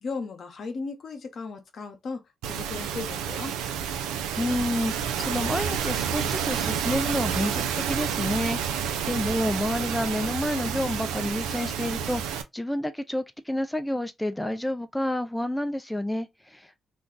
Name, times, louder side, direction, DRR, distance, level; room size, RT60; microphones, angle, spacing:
voice 1, 0.0-3.5, left 4 dB, 65° left, 0.8 m, -36 dB
sound 1, 2.4-12.4, right 8 dB, 85° right, 0.4 m, -29 dB
voice 2, 4.4-16.8, left 1 dB, 10° left, 0.4 m, -29 dB
2.5 x 2.3 x 3.6 m
supercardioid pair, 50°, 0 cm